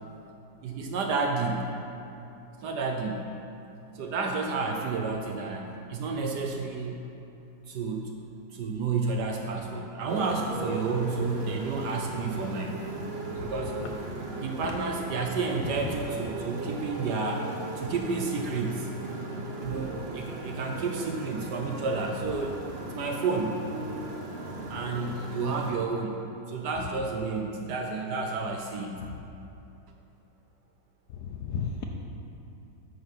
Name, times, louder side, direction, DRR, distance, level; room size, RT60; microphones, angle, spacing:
voice 1, 0.6-1.7 2.6-3.3 3.9-7.0 7.7-8.1 8.5-12.9 13.4-13.8 14.4-17.4 17.7-18.9 19.6-22.5 22.9-23.6 24.7-29.1, right 4 dB, 65° right, 2 dB, 1.1 m, -31 dB
Motorcycle, 10.1-25.7, right 2 dB, 45° right, 0.8 m, -37 dB
voice 2, 13.3-14.0 14.6-14.7 15.6-16.0 17.8-17.9 19.6-19.8 24.6-24.8 29.0-29.2 31.1-31.8, left 6 dB, 70° left, 2 dB, 1.0 m, -36 dB
10.5 x 9.0 x 4.2 m, 2.8 s
omnidirectional pair, 2.3 m